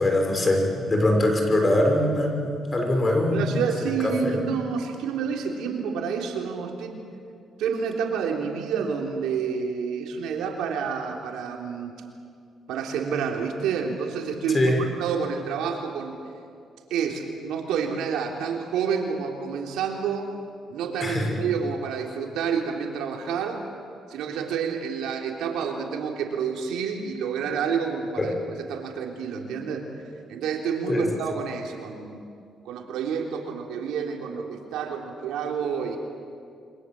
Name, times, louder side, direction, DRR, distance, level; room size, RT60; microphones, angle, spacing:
voice 1, 0.0-3.9 4.2-4.4 14.5-14.8 21.0-21.4 28.2-28.3 30.9-31.1, left 1 dB, 30° left, 2 dB, 6.2 m, -23 dB
voice 2, 3.3-7.0 7.6-11.9 12.7-16.2 16.9-20.3 20.7-23.6 24.1-29.9 30.3-32.2 32.7-36.0, right 6 dB, 90° right, 1 dB, 3.6 m, -29 dB
28.0 x 25.0 x 7.9 m, 2.4 s
cardioid pair, 90°, 0 cm